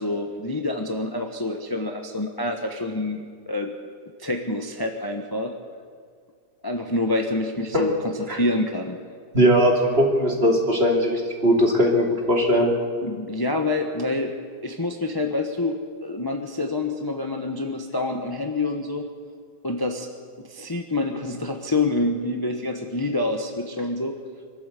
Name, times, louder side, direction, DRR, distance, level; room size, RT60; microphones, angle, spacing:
voice 1, 0.0-3.7 4.2-5.5 6.6-9.0 13.0-14.3 14.6-19.1 19.6-20.1 20.4-24.1, left 2 dB, 15° left, 3 dB, 1.1 m, -27 dB
voice 2, 9.3-12.7, equal, 35° right, 0 dB, 3.2 m, -19 dB
24.5 x 13.0 x 8.3 m, 2.1 s
omnidirectional pair, 1.7 m